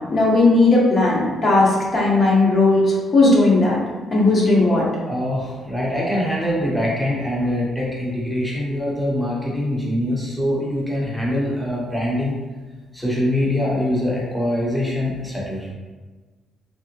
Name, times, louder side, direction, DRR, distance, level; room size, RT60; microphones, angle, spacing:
voice 1, 0.0-3.8 4.1-4.8, left 2 dB, 40° left, -4 dB, 0.9 m, -16 dB
voice 2, 5.1-12.3 12.9-15.7, left 1 dB, ahead, -5 dB, 0.7 m, -23 dB
3.5 x 2.1 x 2.8 m, 1.3 s
cardioid pair, 90°, 0 cm